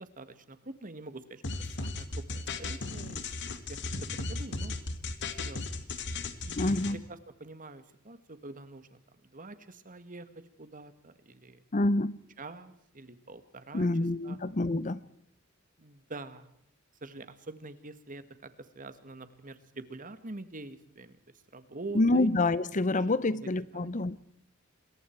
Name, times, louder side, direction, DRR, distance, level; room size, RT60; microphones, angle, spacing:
voice 1, 0.0-1.4 1.7-3.3 3.7-3.8 4.1-4.7 5.4-5.8 6.4-8.9 9.2-10.3 10.6-11.6 12.4-13.9 14.2-14.4 15.8-16.5 17.0-21.2 21.5-22.3 22.9-24.0, right 2 dB, 40° right, 1.8 m, -45 dB
sound 1, 1.4-6.9, left 3 dB, 60° left, 1.9 m, -36 dB
voice 2, 6.6-7.0 11.7-12.2 13.7-15.0 21.9-24.2, left 2 dB, 35° left, 0.7 m, -27 dB
27.5 x 22.0 x 4.6 m
head